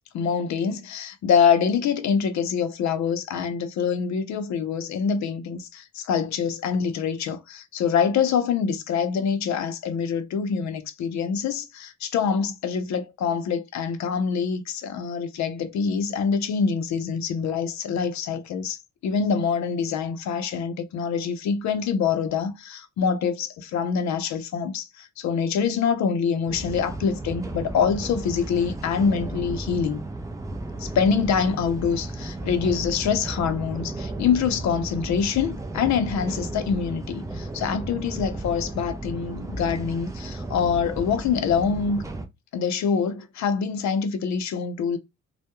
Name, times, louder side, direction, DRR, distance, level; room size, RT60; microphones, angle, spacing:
voice 1, 0.1-30.0 30.8-42.0 42.5-45.0, left 6 dB, 65° left, 0.5 m, -25 dB
sound 1, 26.5-42.3, right 2 dB, 10° right, 0.4 m, -34 dB
2.2 x 2.1 x 2.8 m
cardioid pair, 90°, 30 cm